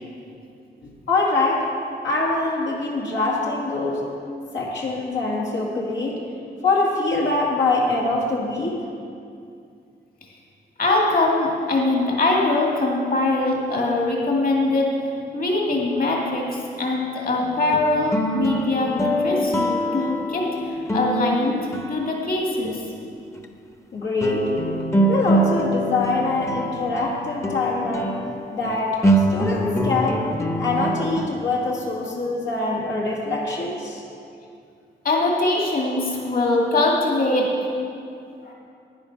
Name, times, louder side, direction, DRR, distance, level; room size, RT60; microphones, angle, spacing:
voice 1, 0.8-1.7 2.0-4.0 4.5-6.2 6.6-8.8 23.9-24.5 25.0-28.2 28.5-30.2 30.6-34.1, left 3 dB, 80° left, -4 dB, 1.9 m, -24 dB
voice 2, 10.8-14.9 15.3-22.8 35.0-37.7 38.4-38.5, left 2 dB, 50° left, -2 dB, 2.1 m, -22 dB
sound 1, 17.4-22.7 23.3-23.4 24.2-31.3, right 1 dB, 15° left, 0.8 m, -24 dB
10.5 x 9.6 x 5.9 m, 2.5 s
cardioid pair, 90°, 19 cm